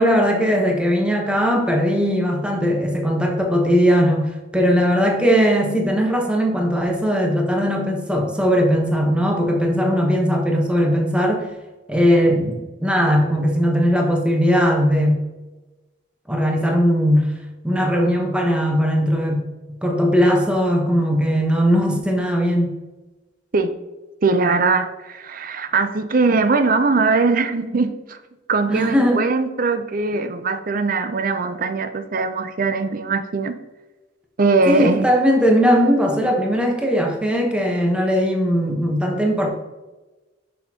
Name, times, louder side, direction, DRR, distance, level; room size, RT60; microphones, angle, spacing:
voice 1, 0.0-11.5 11.9-15.2 16.3-17.3 17.6-19.4 19.8-22.7 28.7-29.2 34.7-39.5, equal, 5° right, 0 dB, 1.0 m, -19 dB
voice 2, 24.2-28.2 28.5-33.5 34.4-35.1, right 4 dB, 50° right, 10 dB, 0.6 m, -20 dB
6.5 x 6.5 x 2.9 m, 1.1 s
head